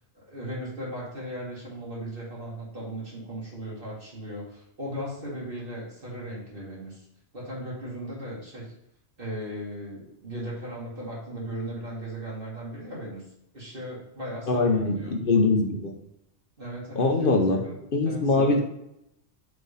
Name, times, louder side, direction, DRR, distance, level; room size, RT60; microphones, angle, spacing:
voice 1, 0.1-7.1 7.3-8.7 9.2-13.2 13.5-15.1 16.6-17.7 18.0-18.6, right 1 dB, 55° right, -5 dB, 2.4 m, -37 dB
voice 2, 14.5-16.0 17.0-17.6 17.9-18.6, left 3 dB, 55° left, 3 dB, 1.0 m, -22 dB
7.6 x 3.5 x 5.5 m, 0.80 s
omnidirectional pair, 1.2 m